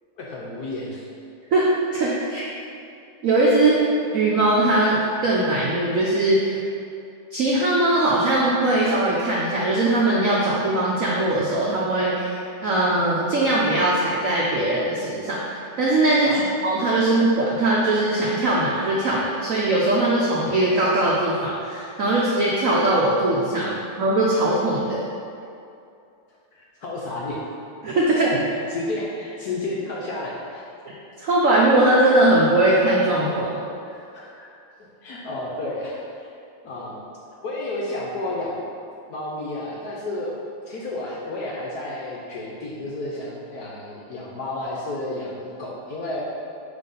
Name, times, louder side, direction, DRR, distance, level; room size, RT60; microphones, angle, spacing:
voice 1, 0.2-1.1 16.2-16.4 26.8-27.4 28.3-30.7 33.8-34.5 34.8-36.3 36.6-37.0 37.4-38.6 39.1-46.2, left 2 dB, 65° left, -4 dB, 1.0 m, -31 dB
voice 2, 1.5-2.5 3.2-3.9 4.1-6.6 7.3-12.4 12.6-25.1 27.8-28.3 31.2-33.6, right 2 dB, 75° right, -5 dB, 0.7 m, -20 dB
5.5 x 3.3 x 5.4 m, 2.5 s
omnidirectional pair, 2.2 m